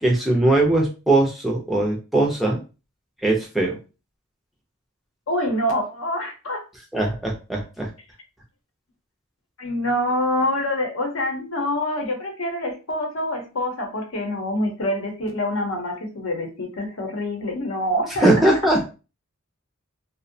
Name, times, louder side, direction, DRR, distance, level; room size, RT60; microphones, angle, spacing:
voice 1, 0.0-2.6 3.2-3.8 6.9-7.9 18.2-18.9, right 2 dB, ahead, -2 dB, 0.4 m, -20 dB
voice 2, 5.3-6.6 9.6-18.3, left 1 dB, 70° left, 3 dB, 0.8 m, -26 dB
2.6 x 2.0 x 2.6 m, 0.31 s
head